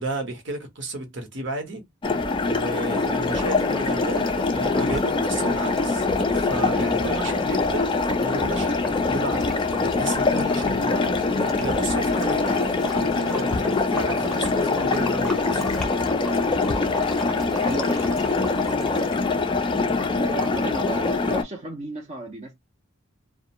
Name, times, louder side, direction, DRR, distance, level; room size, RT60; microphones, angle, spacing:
voice 1, 0.0-1.8 2.5-6.1 6.3-7.9 8.1-11.1 11.6-15.8, right 2 dB, 65° right, 0.9 m, -33 dB
sound 1, 2.0-21.4, left 3 dB, 25° left, 0.3 m, -24 dB
sound 2, 2.9-19.3, left 2 dB, 5° left, 0.7 m, -34 dB
voice 2, 17.4-18.3 20.3-22.5, right 2 dB, 35° right, 0.5 m, -34 dB
2.4 x 2.1 x 2.8 m
head